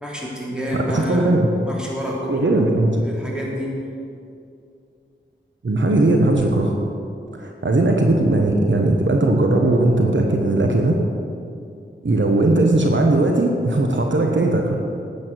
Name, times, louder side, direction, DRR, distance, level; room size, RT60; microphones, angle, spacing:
voice 1, 0.0-2.7 3.0-3.7, equal, 5° right, -4 dB, 3.5 m, -28 dB
voice 2, 0.7-1.5 2.3-3.0 5.6-6.8 7.3-11.0 12.0-14.8, right 2 dB, 65° right, 2 dB, 1.1 m, -18 dB
12.0 x 8.8 x 6.3 m, 2.5 s
cardioid pair, 40°, 21 cm